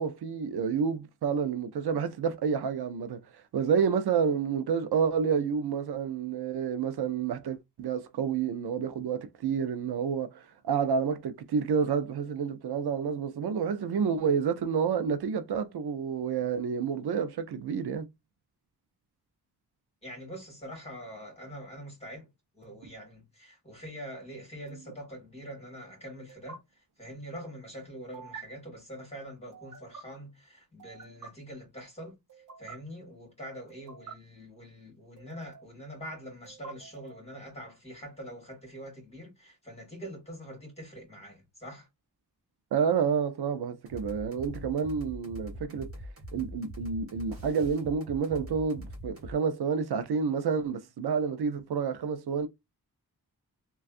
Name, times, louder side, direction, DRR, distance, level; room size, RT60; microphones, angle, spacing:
voice 1, 0.0-3.2 3.5-18.1 42.7-45.9 46.3-52.5, right 6 dB, 85° right, 0.6 m, -29 dB
voice 2, 20.0-22.3 22.5-26.6 27.0-32.2 32.6-41.9, equal, 15° left, 1.9 m, -44 dB
sound 1, 22.6-22.9 24.7-24.9 26.3-26.6 28.1-28.4 29.5-30.0 30.8-31.3 32.3-32.8 33.7-34.1 35.2-35.7 36.4-37.3, right 5 dB, 55° right, 0.8 m, -47 dB
sound 2, 43.9-49.4, equal, 35° right, 1.2 m, -43 dB
3.2 x 2.3 x 2.4 m
wide cardioid pair, 130°, 38 cm